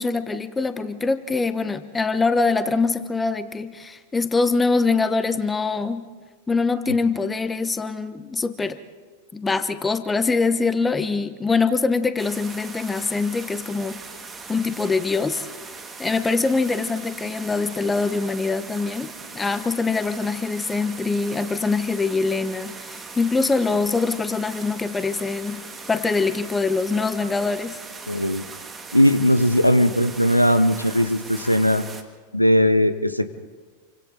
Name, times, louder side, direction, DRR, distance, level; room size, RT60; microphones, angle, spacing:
voice 1, 0.0-6.1 6.5-8.8 9.3-14.0 14.5-15.5 16.0-25.6 25.9-27.8, left 4 dB, 10° left, 12 dB, 1.1 m, -23 dB
sound 1, 12.2-32.0, right 4 dB, 15° right, 2.0 m, -39 dB
voice 2, 28.1-28.4 28.9-31.8 32.3-33.3, equal, 90° left, 13 dB, 0.9 m, -18 dB
28.5 x 25.0 x 4.1 m, 1.4 s
figure-of-eight pair, 90°, 0 cm